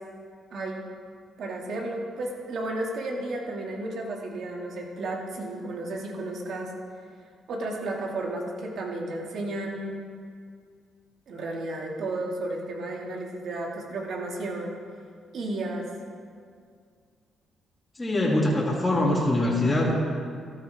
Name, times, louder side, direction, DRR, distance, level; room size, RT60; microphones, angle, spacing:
voice 1, 0.5-0.8 1.4-6.7 7.5-10.0 11.3-14.8 15.3-15.9, right 2 dB, 65° right, 0 dB, 2.1 m, -33 dB
voice 2, 18.0-19.9, left 1 dB, 20° left, -5 dB, 2.5 m, -23 dB
14.0 x 12.0 x 3.5 m, 2.1 s
cardioid pair, 90°, 0 cm